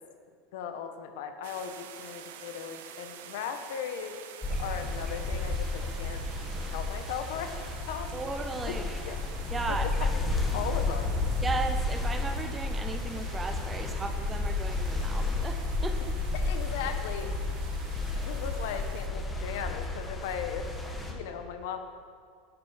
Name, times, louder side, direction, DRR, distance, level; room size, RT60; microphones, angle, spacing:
voice 1, 0.5-4.2 4.6-6.2 6.7-7.5 7.9-8.2 8.7-8.8 9.0-9.2 9.7-11.2 16.3-17.6 18.2-20.7 21.1-21.8, left 8 dB, 70° left, 7 dB, 1.1 m, -37 dB
sound 1, 1.4-19.1, right 9 dB, 90° right, 0.8 m, -49 dB
sound 2, 4.4-21.1, left 2 dB, 10° left, 1.2 m, -32 dB
voice 2, 8.1-9.2 9.5-10.1 11.4-16.2, right 3 dB, 10° right, 7 dB, 0.6 m, -36 dB
11.5 x 8.0 x 5.7 m, 2.2 s
supercardioid pair, 165°, 0 cm